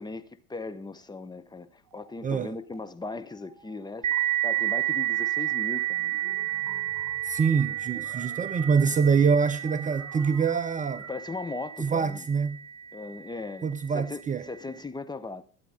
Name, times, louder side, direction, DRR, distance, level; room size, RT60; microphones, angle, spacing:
voice 1, 0.0-6.1 11.1-12.3 12.9-15.4, left 3 dB, 10° left, 0.8 m, -38 dB
sound 1, 1.8-2.8 3.1-11.1, right 3 dB, 40° right, 6.2 m, -50 dB
voice 2, 2.2-2.5 7.2-11.1 11.8-12.6 13.6-14.5, right 6 dB, 20° right, 0.7 m, -25 dB
sound 2, 4.0-13.3, right 14 dB, 65° right, 1.5 m, -31 dB
21.5 x 8.3 x 3.8 m
hypercardioid pair, 85°, 44 cm